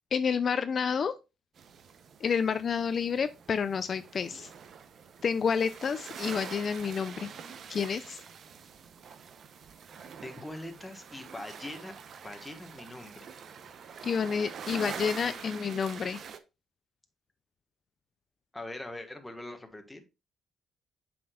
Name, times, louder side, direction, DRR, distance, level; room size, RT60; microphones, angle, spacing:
voice 1, 0.1-1.1 2.2-4.5 5.2-7.3 7.7-8.2 14.0-16.2, left 6 dB, 50° left, 0.4 m, -29 dB
sound 1, 1.6-16.4, right 7 dB, 60° right, 0.7 m, -45 dB
voice 2, 10.2-11.9 12.2-13.3 14.7-15.6 18.5-20.0, left 1 dB, 10° left, 1.5 m, -43 dB
7.5 x 6.0 x 2.4 m
cardioid pair, 90°, 0 cm